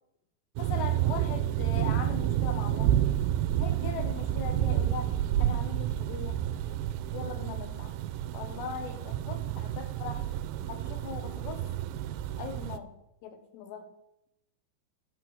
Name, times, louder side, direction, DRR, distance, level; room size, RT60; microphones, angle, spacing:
voice 1, 0.6-3.0 3.6-6.4 7.1-8.0 8.3-10.3 10.7-11.7 12.4-13.9, left 6 dB, 90° left, 7 dB, 3.6 m, -40 dB
sound 1, 0.6-12.8, right 12 dB, 80° right, 2.3 m, -30 dB
11.0 x 6.3 x 7.7 m, 0.83 s
omnidirectional pair, 4.8 m